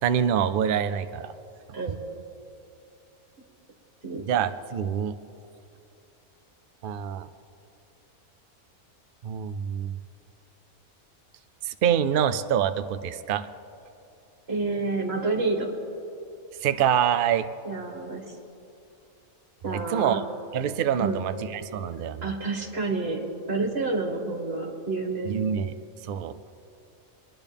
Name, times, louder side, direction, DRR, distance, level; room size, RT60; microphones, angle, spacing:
voice 1, 0.0-1.3 4.3-5.2 6.8-7.3 9.2-9.9 11.6-13.5 16.6-17.5 19.7-20.2 20.5-22.3 25.2-25.7 26.1-26.4, right 9 dB, 85° right, 11 dB, 0.4 m, -26 dB
voice 2, 14.5-15.7 17.6-18.2 19.6-20.2 21.0-21.3 22.2-25.3, right 3 dB, 45° right, 1 dB, 2.1 m, -29 dB
26.0 x 10.5 x 3.5 m, 2.7 s
omnidirectional pair, 1.5 m